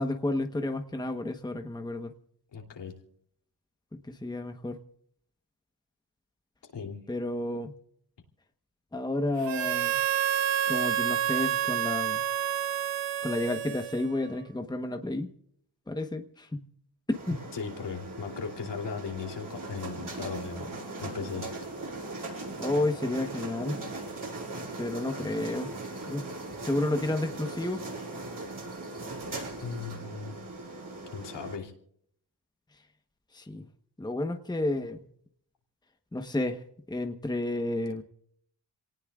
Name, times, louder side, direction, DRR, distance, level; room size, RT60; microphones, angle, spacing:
voice 1, 0.0-2.1 3.9-4.8 7.1-7.7 8.9-10.0 10.7-12.2 13.2-15.3 15.9-16.6 17.3-17.4 22.6-23.8 24.8-25.7 26.1-26.3 26.6-27.8 33.3-33.7 34.0-35.1 36.1-38.0, left 2 dB, 10° left, 6 dB, 1.1 m, -31 dB
voice 2, 2.5-2.9 6.7-7.0 17.5-20.7 21.0-21.5 29.6-30.4 31.1-31.7, left 5 dB, 75° left, 2 dB, 3.1 m, -37 dB
Harmonica, 9.4-14.3, right 10 dB, 80° right, 0.9 m, -29 dB
sound 1, 17.1-31.6, right 2 dB, 50° right, 7.4 m, -39 dB
27.5 x 18.5 x 2.4 m, 0.66 s
wide cardioid pair, 100°, 42 cm